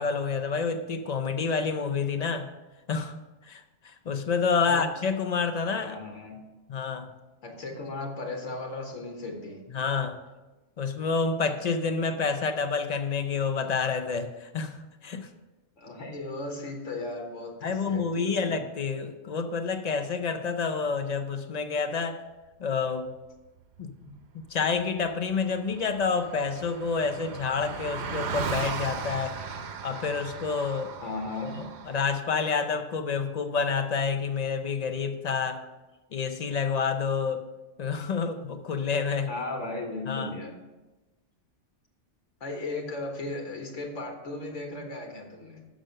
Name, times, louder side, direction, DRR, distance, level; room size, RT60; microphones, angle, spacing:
voice 1, 0.0-2.5 2.9-3.2 3.5-5.9 6.7-7.1 9.7-10.2 10.8-15.3 17.6-22.2 22.6-23.1 23.8-23.9 24.3-29.4 29.8-30.9 31.6-35.6 36.1-37.5 37.8-39.3 40.1-40.3, left 5 dB, 50° left, 8 dB, 0.5 m, -28 dB
voice 2, 5.8-6.4 7.4-9.6 15.8-18.5 24.0-24.1 31.0-31.7 39.3-40.5 42.4-45.7, left 2 dB, 85° left, 1 dB, 1.5 m, -36 dB
Car passing by, 25.0-25.1 25.2-32.1, right 6 dB, 65° right, 0.9 m, -37 dB
6.3 x 6.3 x 6.5 m, 1.1 s
omnidirectional pair, 1.3 m